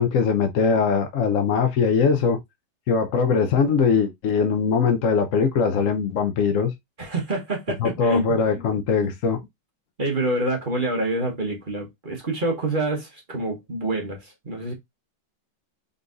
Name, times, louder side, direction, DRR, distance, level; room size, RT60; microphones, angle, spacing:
voice 1, 0.0-2.4 2.9-6.7 7.8-9.4, left 5 dB, 70° left, 0.7 m, -21 dB
voice 2, 7.0-8.3 9.0-9.1 10.0-14.7, right 2 dB, 30° right, 1.2 m, -27 dB
4.0 x 3.9 x 2.6 m
omnidirectional pair, 2.2 m